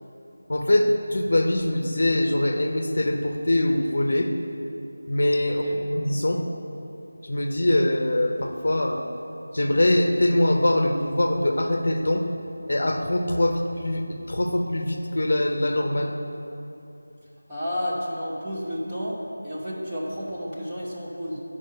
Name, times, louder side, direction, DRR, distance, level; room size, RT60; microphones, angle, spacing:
voice 1, 0.5-4.3 5.1-5.6 5.9-6.4 7.3-9.0 9.5-12.2 12.7-16.1, left 1 dB, 60° left, 4 dB, 0.7 m, -23 dB
voice 2, 5.5-5.8 17.5-21.4, equal, 15° right, -8 dB, 1.1 m, -31 dB
9.0 x 5.1 x 5.5 m, 2.8 s
figure-of-eight pair, 175°, 0 cm